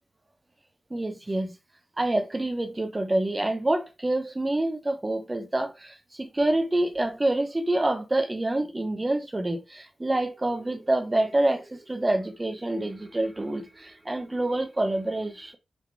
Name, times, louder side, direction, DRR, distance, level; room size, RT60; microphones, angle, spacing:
voice 1, 0.9-1.6 2.0-15.6, right 1 dB, 15° right, 1.0 m, -27 dB
6.2 x 4.4 x 4.7 m
wide cardioid pair, 175°, 0 cm